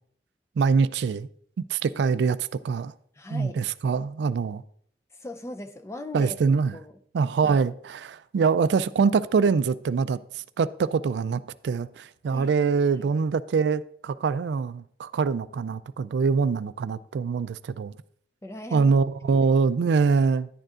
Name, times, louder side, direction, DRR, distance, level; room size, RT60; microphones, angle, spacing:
voice 1, 0.6-1.3 1.6-2.9 3.3-4.6 6.1-6.8 7.1-18.0 18.7-20.5, right 5 dB, 75° right, 0.3 m, -24 dB
voice 2, 3.2-3.6 5.1-6.4 6.7-7.0 7.4-7.6 12.3-13.1 18.4-18.9 19.3-19.5, left 1 dB, 15° left, 0.4 m, -39 dB
11.0 x 9.1 x 2.4 m
head